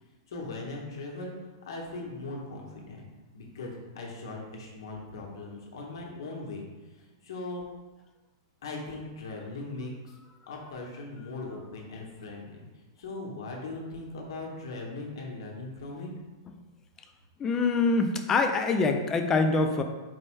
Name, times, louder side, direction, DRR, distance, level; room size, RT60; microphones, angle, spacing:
voice 1, 0.3-1.3 1.7-3.1 3.3-6.6 7.2-7.6 8.6-9.9 10.5-12.6 13.0-16.1, left 2 dB, 75° left, -1 dB, 1.0 m, -39 dB
voice 2, 17.4-19.8, left 3 dB, 20° left, 6 dB, 0.3 m, -25 dB
4.6 x 2.1 x 4.5 m, 1.2 s
hypercardioid pair, 150°, 2 cm